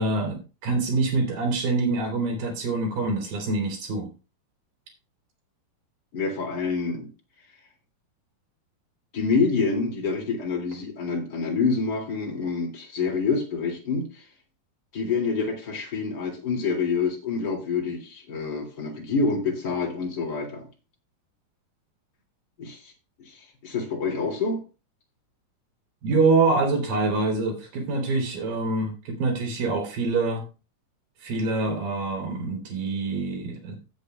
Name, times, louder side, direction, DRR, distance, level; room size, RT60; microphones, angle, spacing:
voice 1, 0.0-4.1 26.0-30.4 31.2-33.8, right 3 dB, 80° right, -1 dB, 4.2 m, -25 dB
voice 2, 6.1-7.1 9.1-14.3 14.9-20.7 22.6-22.9 23.3-24.6, left 4 dB, 35° left, 0 dB, 2.4 m, -27 dB
16.0 x 7.8 x 2.2 m, 0.32 s
omnidirectional pair, 3.9 m